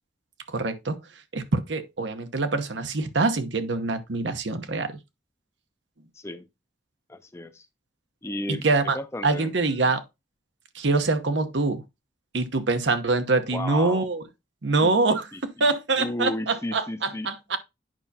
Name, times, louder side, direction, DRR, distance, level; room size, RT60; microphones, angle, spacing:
voice 1, 0.5-1.0 1.3-5.0 8.5-9.0 9.2-10.0 10.7-11.8 12.3-14.2 14.6-15.3 15.6-17.6, right 3 dB, 85° right, 1.0 m, -24 dB
voice 2, 6.1-6.5 7.1-7.7 8.2-9.9 13.5-14.1 14.8-15.4 16.0-17.3, left 1 dB, 15° left, 0.5 m, -34 dB
8.9 x 5.7 x 2.8 m
head